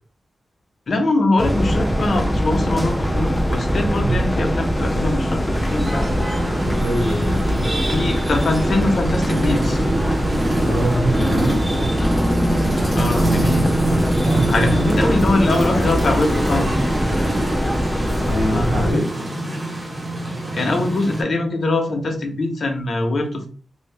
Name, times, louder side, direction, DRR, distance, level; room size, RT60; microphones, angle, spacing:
voice 1, 0.9-6.3 7.9-9.8 12.9-13.7 14.5-16.8 18.4-19.0 20.5-23.5, left 2 dB, 50° left, 4 dB, 0.6 m, -22 dB
sound 1, 1.4-18.9, equal, 5° left, 0.3 m, -22 dB
sound 2, 5.5-21.2, right 1 dB, 20° right, 0.7 m, -25 dB
voice 2, 6.8-7.6 10.6-11.9 14.2-14.4 18.2-19.1, equal, 80° right, -2 dB, 1.4 m, -23 dB
2.6 x 2.0 x 3.2 m, 0.41 s
wide cardioid pair, 135°, 0 cm